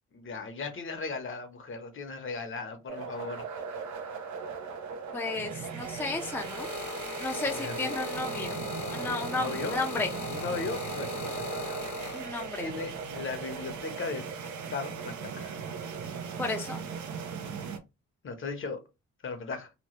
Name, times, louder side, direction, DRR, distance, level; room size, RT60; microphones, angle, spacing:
voice 1, 0.1-3.5 7.4-7.9 9.3-9.8 10.3-11.8 12.6-14.3 14.7-15.6 18.2-18.8 19.2-19.7, left 4 dB, 40° left, 0.8 m, -37 dB
sound 1, 2.9-17.8, right 5 dB, 70° right, 0.7 m, -38 dB
voice 2, 5.1-6.7 7.2-8.6 8.9-10.1 12.1-12.7 16.4-16.8, left 3 dB, 5° left, 0.5 m, -33 dB
sound 2, 5.8-12.7 13.5-13.8, left 5 dB, 70° left, 0.9 m, -40 dB
2.9 x 2.1 x 3.1 m
cardioid pair, 90°, 30 cm